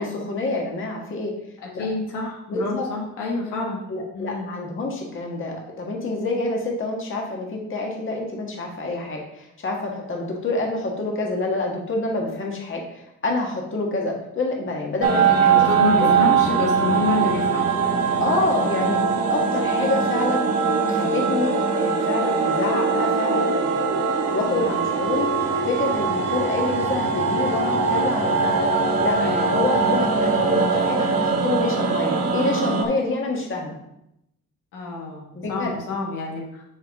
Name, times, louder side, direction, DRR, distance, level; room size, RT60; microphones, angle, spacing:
voice 1, 0.0-1.3 1.7-1.9 2.5-2.9 3.9-15.6 16.0-16.2 18.2-19.0 19.3-20.4 20.8-23.9 24.3-28.7 29.0-29.2 29.4-33.8 35.3-35.7, left 2 dB, 40° left, 0 dB, 1.6 m, -27 dB
voice 2, 1.6-3.8 4.1-4.5 15.3-17.7 24.5-24.7 29.2-29.6 34.7-35.2 35.5-36.8, left 4 dB, 90° left, -2 dB, 1.6 m, -28 dB
sound 1, 15.0-32.8, right 5 dB, 55° right, 1.1 m, -21 dB
8.7 x 3.7 x 3.6 m, 0.81 s
cardioid pair, 90°, 30 cm